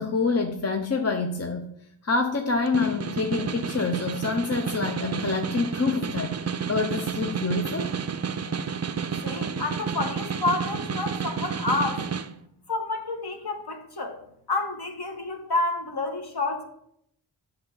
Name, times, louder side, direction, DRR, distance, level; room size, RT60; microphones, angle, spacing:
voice 1, 0.0-1.7 2.0-6.4 6.7-7.9, left 4 dB, 30° left, 4 dB, 0.7 m, -26 dB
Snare drum, 2.5-12.3, right 6 dB, 35° right, 0.5 m, -31 dB
voice 2, 9.2-12.1 12.7-14.2 14.5-16.6, left 3 dB, 50° left, 4 dB, 1.5 m, -29 dB
7.8 x 6.0 x 4.0 m, 0.73 s
cardioid pair, 50°, 48 cm